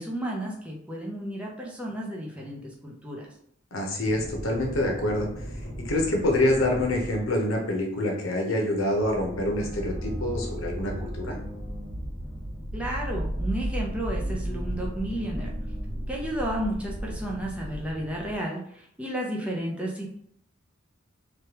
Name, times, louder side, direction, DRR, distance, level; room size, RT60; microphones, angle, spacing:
voice 1, 0.0-3.3 12.7-15.5 16.1-18.6 19.0-20.1, right 1 dB, 5° right, -2 dB, 0.5 m, -32 dB
voice 2, 3.7-11.4, left 1 dB, 85° left, 1 dB, 0.7 m, -26 dB
sound 1, 4.0-7.7 8.7-18.4, equal, 55° left, 1.3 m, -35 dB
3.2 x 2.3 x 2.8 m, 0.68 s
head